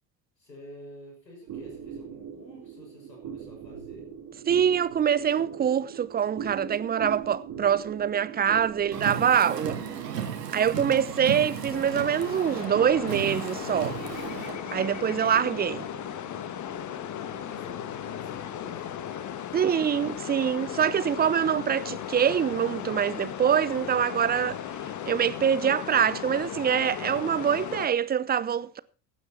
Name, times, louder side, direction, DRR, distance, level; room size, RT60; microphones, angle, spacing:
voice 1, 0.4-4.1 17.2-20.1, left 1 dB, 80° left, 6.5 m, -50 dB
sound 1, 1.5-20.2, right 7 dB, 40° right, 3.0 m, -42 dB
voice 2, 4.5-9.8 10.5-14.0 14.7-15.9 19.5-24.6 25.1-28.8, right 8 dB, 20° right, 0.7 m, -25 dB
Car, 8.9-14.6, right 8 dB, 70° right, 2.2 m, -35 dB
sound 2, 11.2-27.9, left 10 dB, 35° left, 1.7 m, -36 dB
16.0 x 11.0 x 4.4 m
figure-of-eight pair, 65°, 49 cm